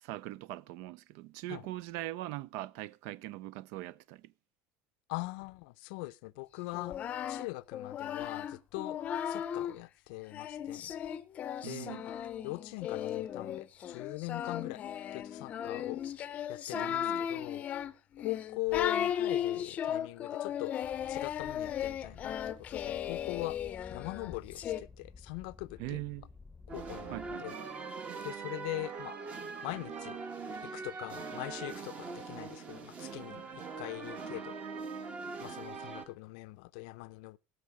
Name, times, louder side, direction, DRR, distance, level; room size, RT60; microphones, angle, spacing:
voice 1, 0.0-4.3 11.6-12.1 16.7-17.3 25.8-26.3 27.1-27.5, right 16 dB, 65° right, 0.5 m, -41 dB
voice 2, 5.1-7.0 7.3-9.0 9.3-10.9 11.6-12.2 12.4-14.8 15.1-16.0 16.5-17.7 18.2-20.7 21.1-22.3 22.7-23.6 23.9-26.0 26.7-27.6 28.2-29.2 29.6-30.2 30.6-34.6 35.4-37.4, left 22 dB, 80° left, 0.5 m, -41 dB
Singing, 6.7-9.8 10.3-24.8, left 10 dB, 30° left, 0.6 m, -36 dB
sound 1, 20.8-27.4, left 4 dB, 5° left, 0.9 m, -52 dB
sound 2, 26.7-36.0, right 5 dB, 30° right, 1.3 m, -42 dB
16.0 x 6.5 x 4.8 m
cardioid pair, 165°, 5 cm